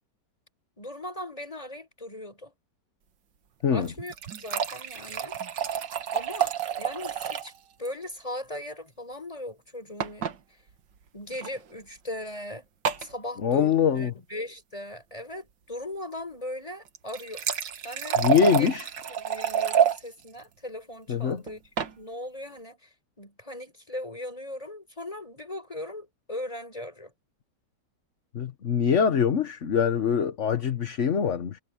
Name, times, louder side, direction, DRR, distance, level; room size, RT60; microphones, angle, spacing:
voice 1, 0.8-2.6 3.7-5.4 6.1-7.5 7.8-10.2 11.1-12.7 13.0-17.4 17.8-18.2 18.5-18.7 19.1-22.9 23.2-27.1, left 1 dB, 20° left, 6.5 m, -39 dB
sound 1, 3.8-7.6 7.9-8.0 8.2-8.3 10.0-10.4 11.3-11.5 12.9-13.1 16.9-20.0 21.5-21.9, right 8 dB, 90° right, 2.0 m, -28 dB
voice 2, 13.4-14.1 18.2-18.9 21.1-21.4 28.3-31.6, left 7 dB, 45° left, 1.4 m, -24 dB
omnidirectional pair, 1.9 m